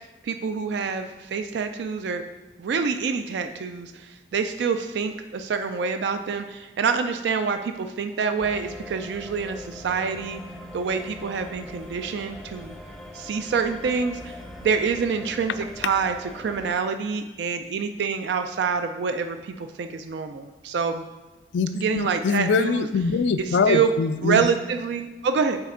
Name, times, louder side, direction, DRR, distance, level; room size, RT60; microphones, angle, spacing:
voice 1, 0.2-2.2 2.6-10.4 10.7-12.7 13.1-14.4 14.6-21.1 21.7-22.9 23.7-23.9 24.2-25.6, right 5 dB, 70° right, 7 dB, 0.3 m, -26 dB
sound 1, 8.4-16.8, left 1 dB, ahead, 0.5 m, -41 dB
voice 2, 21.5-24.5, left 5 dB, 75° left, 12 dB, 0.3 m, -23 dB
8.7 x 4.3 x 3.7 m, 1.2 s
head